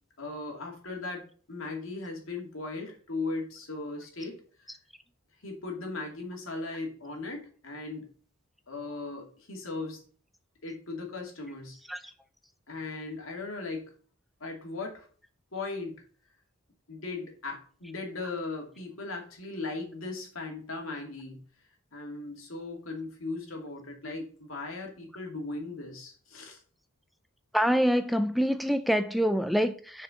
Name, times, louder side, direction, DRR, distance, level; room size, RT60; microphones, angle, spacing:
voice 1, 0.2-4.7 5.4-8.1 8.7-10.0 10.6-11.8 12.7-13.9 14.4-15.1 15.5-16.0 16.9-21.4 21.9-26.6, left 3 dB, 80° left, 2.5 m, -38 dB
voice 2, 27.5-30.0, equal, ahead, 0.4 m, -25 dB
6.6 x 4.9 x 6.4 m
head